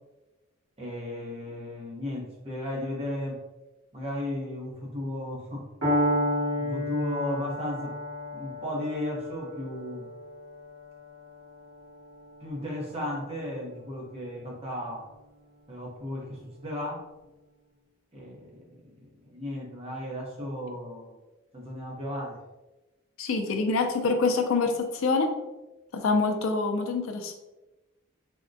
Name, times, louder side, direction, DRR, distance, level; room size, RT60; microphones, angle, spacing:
voice 1, 0.8-3.4 3.9-5.7 6.5-7.9 8.3-10.1 12.4-15.0 15.7-17.0 18.1-18.6 19.0-21.2 21.5-22.4, left 1 dB, 30° right, -3 dB, 0.7 m, -35 dB
Piano, 5.8-13.7, equal, 75° right, 1.3 m, -32 dB
voice 2, 23.2-25.3 25.9-27.3, left 3 dB, 70° left, 5 dB, 0.4 m, -26 dB
3.5 x 2.1 x 2.6 m, 1.1 s
head